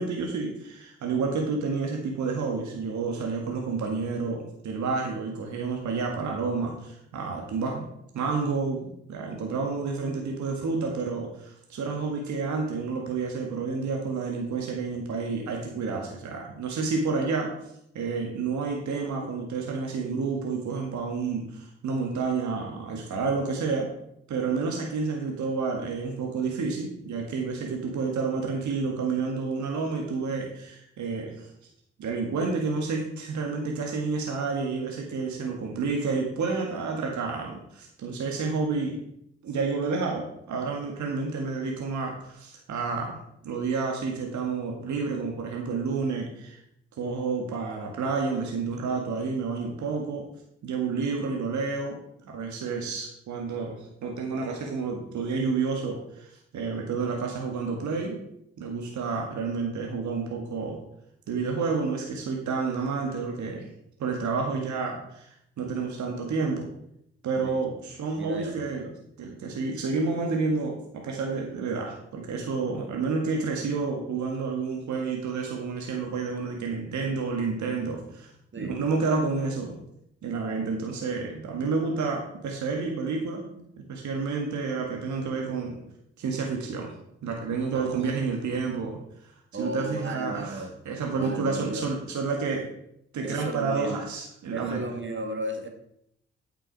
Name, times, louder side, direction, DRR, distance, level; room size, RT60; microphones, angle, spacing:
voice 1, 0.0-7.8 8.1-17.5 17.9-23.9 24.3-31.5 32.0-38.9 39.4-46.6 47.0-50.2 50.6-52.0 52.2-58.2 58.6-60.8 61.3-63.7 64.0-66.7 67.2-68.8 69.2-78.3 78.6-79.8 80.2-83.4 83.9-85.8 86.2-86.9 87.2-89.3 89.6-92.6 93.1-94.8, right 4 dB, 65° right, 1 dB, 1.8 m, -30 dB
voice 2, 68.1-68.9 78.5-78.8 87.7-88.6 89.5-90.8 91.2-91.8 93.2-94.0 94.5-95.7, right 1 dB, 40° right, 4 dB, 2.2 m, -35 dB
9.1 x 6.8 x 4.7 m, 0.75 s
hypercardioid pair, 40°, 31 cm